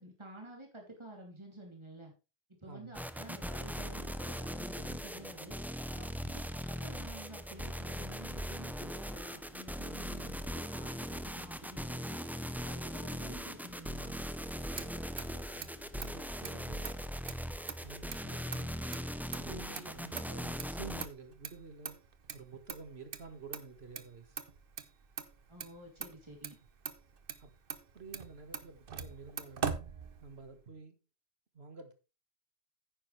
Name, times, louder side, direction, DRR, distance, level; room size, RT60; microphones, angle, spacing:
voice 1, 0.0-2.1 2.6-5.6 5.9-12.0 12.6-14.2 25.5-26.6, right 1 dB, 25° right, 3.1 m, -51 dB
voice 2, 2.7-3.0 15.9-17.1 17.8-18.7 19.4-22.0 22.3-24.4 27.4-27.5 27.9-29.9 30.2-31.0 31.5-31.9, right 4 dB, 80° right, 1.9 m, -50 dB
sound 1, 2.9-21.1, equal, ahead, 0.6 m, -40 dB
Motor vehicle (road), 14.4-30.6, right 6 dB, 65° right, 1.0 m, -44 dB
10.0 x 9.4 x 3.3 m
omnidirectional pair, 1.0 m